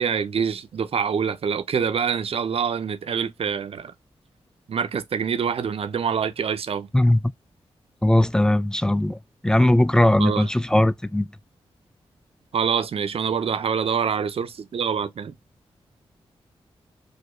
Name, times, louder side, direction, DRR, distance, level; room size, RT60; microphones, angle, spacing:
voice 1, 0.0-3.9 4.7-6.9 10.2-10.5 12.5-15.4, right 7 dB, 60° right, 0.5 m, -25 dB
voice 2, 8.0-9.2 9.4-11.3, left 1 dB, 5° left, 0.3 m, -19 dB
4.8 x 2.1 x 2.2 m
cardioid pair, 50°, 11 cm